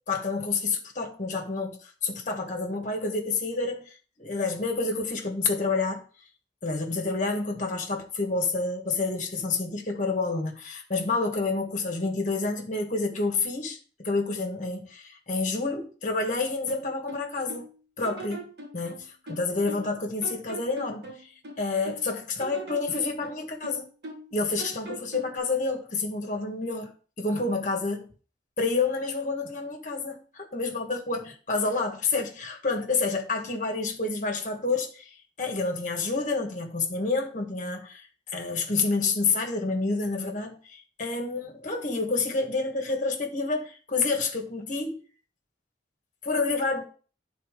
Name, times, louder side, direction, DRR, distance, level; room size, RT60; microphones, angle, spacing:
voice 1, 0.1-6.0 6.6-17.6 18.0-18.5 18.7-23.9 24.3-28.1 28.6-38.1 38.3-45.0 46.2-46.8, left 3 dB, 45° left, 1.4 m, -29 dB
sound 1, 16.7-17.7 18.0-19.9 20.2-22.0 22.4-24.3 24.6-25.4, right 2 dB, 65° right, 1.8 m, -41 dB
9.2 x 4.1 x 5.0 m
head